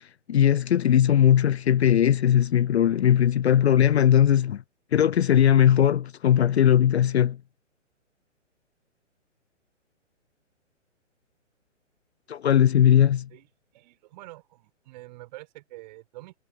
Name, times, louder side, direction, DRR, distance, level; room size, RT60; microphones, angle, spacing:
voice 1, 0.0-4.6 4.9-7.4 12.3-13.3, left 10 dB, 60° left, 0.5 m, -19 dB
voice 2, 13.7-16.3, right 19 dB, 35° right, 6.4 m, -46 dB
figure-of-eight pair, 130°, 38 cm